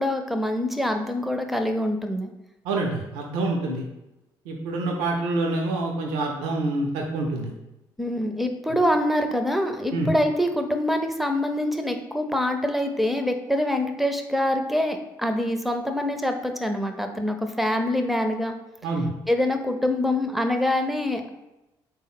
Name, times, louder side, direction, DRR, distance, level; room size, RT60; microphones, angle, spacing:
voice 1, 0.0-2.3 8.0-18.5 19.3-21.3, left 1 dB, ahead, 6 dB, 0.5 m, -25 dB
voice 2, 2.6-3.8 4.5-7.5 9.9-10.1 18.8-19.1, right 2 dB, 80° right, 1 dB, 0.5 m, -26 dB
3.5 x 2.1 x 4.1 m, 0.96 s
hypercardioid pair, 50°, 11 cm